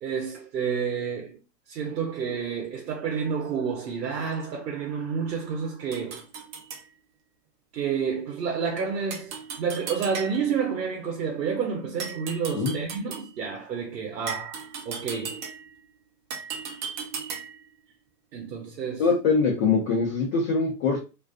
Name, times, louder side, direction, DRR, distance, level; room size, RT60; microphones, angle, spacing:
voice 1, 0.0-6.2 7.7-15.5 18.3-19.1, right 6 dB, 80° right, 0.7 m, -30 dB
sound 1, 5.9-6.9 9.1-10.6 12.0-13.4 14.3-15.8 16.3-17.7, right 6 dB, 30° right, 0.5 m, -37 dB
voice 2, 19.0-21.0, left 4 dB, 35° left, 0.7 m, -23 dB
2.4 x 2.3 x 2.2 m
hypercardioid pair, 120°, 49 cm